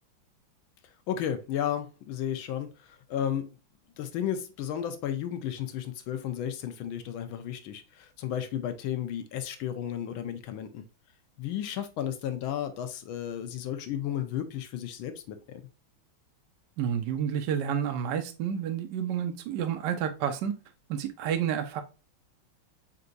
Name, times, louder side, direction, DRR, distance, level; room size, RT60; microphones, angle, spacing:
voice 1, 1.1-3.5 4.0-10.8 11.4-15.6, left 10 dB, 80° left, 1.4 m, -33 dB
voice 2, 16.8-20.5 20.9-21.8, right 8 dB, 70° right, 1.1 m, -30 dB
4.5 x 3.9 x 2.5 m
omnidirectional pair, 2.2 m